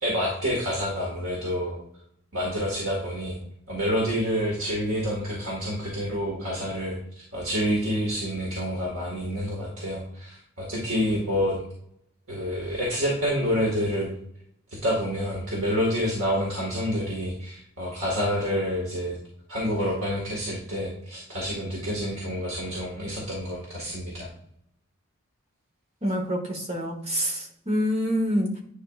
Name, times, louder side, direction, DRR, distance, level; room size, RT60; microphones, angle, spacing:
voice 1, 0.0-1.8 2.3-3.4 3.7-7.0 7.3-11.6 12.3-14.1 14.7-19.2 19.5-24.3, equal, 90° right, -4 dB, 1.9 m, -28 dB
voice 2, 26.0-28.6, equal, 30° right, 2 dB, 1.2 m, -26 dB
10.5 x 4.7 x 2.5 m, 0.72 s
head